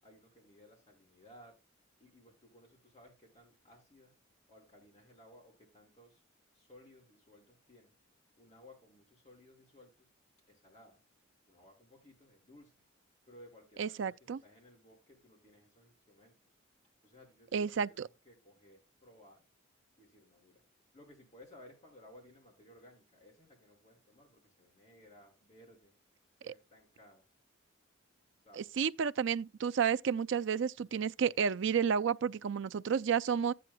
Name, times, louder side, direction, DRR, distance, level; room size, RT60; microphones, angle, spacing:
voice 1, 0.0-1.6 2.0-4.2 4.5-6.2 6.5-7.9 8.4-10.1 10.5-11.0 11.5-12.9 13.3-16.5 17.0-19.4 20.0-20.6 20.9-26.0 26.4-27.3 28.4-28.7, left 1 dB, 30° left, 4.8 m, -59 dB
voice 2, 13.8-14.4 17.5-18.1 28.6-33.5, right 7 dB, 60° right, 0.4 m, -31 dB
13.5 x 9.3 x 2.2 m
head